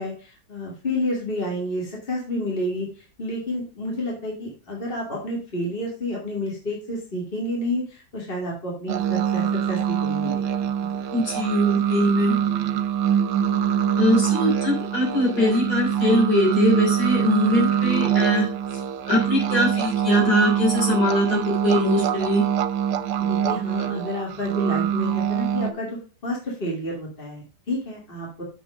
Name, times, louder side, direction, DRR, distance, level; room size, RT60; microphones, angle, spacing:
voice 1, 0.0-2.9 3.2-10.4 23.3-25.9 26.2-28.4, left 1 dB, 30° left, -2 dB, 2.7 m, -30 dB
sound 1, 8.9-25.7, right 9 dB, 75° right, 1.3 m, -24 dB
voice 2, 11.1-12.4 14.0-18.5 19.1-22.4, left 1 dB, 60° left, -4 dB, 4.2 m, -22 dB
7.0 x 6.8 x 4.9 m, 0.35 s
omnidirectional pair, 1.9 m